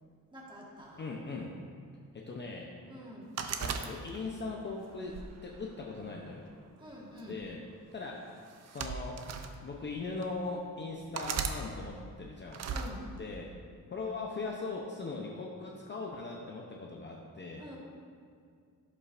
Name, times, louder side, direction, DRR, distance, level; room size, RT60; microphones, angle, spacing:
voice 1, 0.3-1.1 2.8-3.4 6.8-7.4 12.7-13.1 17.6-17.8, equal, 15° right, -4 dB, 1.4 m, -47 dB
voice 2, 1.0-1.6 2.1-2.8 3.5-6.4 7.3-7.6 7.9-8.3 8.7-9.3 9.6-12.7 13.2-13.5 13.9-17.6, left 3 dB, 30° left, -1 dB, 0.6 m, -40 dB
sound 1, 3.4-4.4 5.1-6.2 7.2-7.5 8.5-9.5 10.2-10.3 11.1-11.6 12.5-12.9, right 6 dB, 50° right, 0.5 m, -36 dB
11.0 x 5.5 x 2.5 m, 2.2 s
cardioid pair, 130°, 35 cm